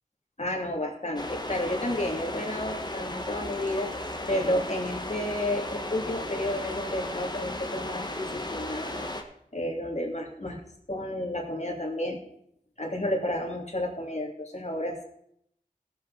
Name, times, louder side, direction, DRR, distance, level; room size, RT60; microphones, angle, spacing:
voice 1, 0.4-3.9 4.3-9.1 9.5-10.6 10.9-12.2 12.8-15.0, left 1 dB, 50° left, 0 dB, 2.6 m, -31 dB
sound 1, 1.2-9.2, left 1 dB, 30° left, 1.4 m, -35 dB
17.5 x 7.5 x 4.0 m, 0.73 s
wide cardioid pair, 45°, 15 cm